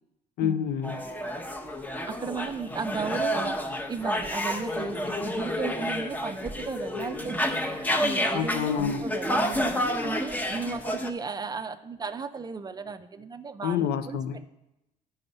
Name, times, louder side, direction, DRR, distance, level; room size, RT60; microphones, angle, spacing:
voice 1, 0.4-1.0 8.3-9.0 13.6-14.4, left 8 dB, 70° left, 11 dB, 0.6 m, -28 dB
sound 1, 0.8-11.1, equal, 10° left, 0.8 m, -30 dB
voice 2, 2.1-7.5 8.0-9.7 10.0-14.2, right 5 dB, 25° right, 10 dB, 0.4 m, -35 dB
8.6 x 5.4 x 5.3 m, 0.92 s
cardioid pair, 110°, 17 cm